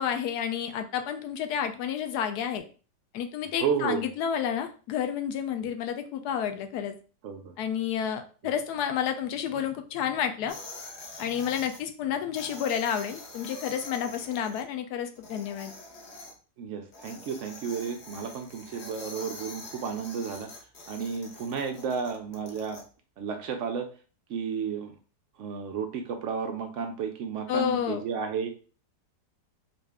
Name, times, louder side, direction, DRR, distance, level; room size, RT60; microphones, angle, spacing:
voice 1, 0.0-2.6 3.1-6.9 7.6-10.6 11.2-15.7 27.5-28.0, left 8 dB, 75° left, 6 dB, 1.1 m, -30 dB
voice 2, 3.6-4.0 7.2-7.5 16.6-20.5 20.9-22.8 23.2-23.9 24.3-24.9 25.4-28.5, right 6 dB, 80° right, 5 dB, 0.6 m, -32 dB
sound 1, 10.5-11.8 12.3-14.6 15.2-16.3 16.9-22.8, left 2 dB, 50° left, 0.9 m, -45 dB
4.0 x 2.5 x 3.4 m, 0.38 s
omnidirectional pair, 1.8 m